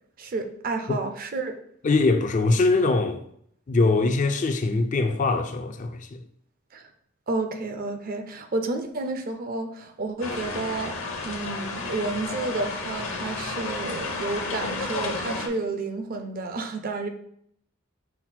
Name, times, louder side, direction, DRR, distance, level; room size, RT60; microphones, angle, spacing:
voice 1, 0.2-1.5 6.7-6.9 7.3-10.9 11.2-17.1, right 3 dB, 45° right, 0.5 m, -31 dB
voice 2, 1.8-3.2 3.7-6.2, left 3 dB, 35° left, 0.3 m, -22 dB
sound 1, 10.2-15.5, left 3 dB, 70° left, 0.8 m, -32 dB
5.8 x 2.1 x 4.2 m
head